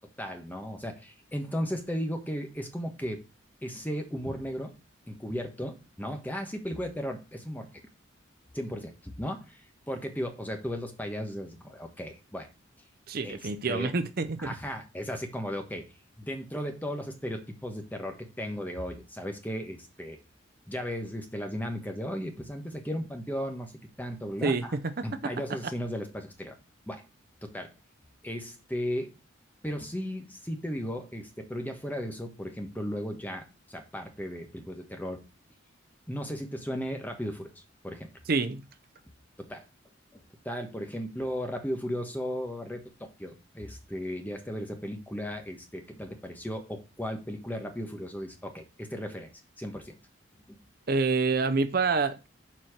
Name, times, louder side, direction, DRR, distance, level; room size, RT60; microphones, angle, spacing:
voice 1, 0.2-3.2 3.6-4.7 5.1-7.7 8.5-12.5 13.2-13.4 13.7-13.9 14.4-15.9 16.2-20.2 20.7-23.7 24.0-24.7 25.0-26.5 26.9-27.0 27.4-27.7 28.2-29.1 29.6-35.2 36.1-38.1 39.4-39.6 40.1-49.3 49.6-49.9 50.5-50.6, equal, 10° left, 1.2 m, -36 dB
voice 2, 13.1-14.5 24.4-25.1 38.3-38.6 50.9-52.3, right 4 dB, 50° right, 0.6 m, -27 dB
7.3 x 4.4 x 6.3 m
head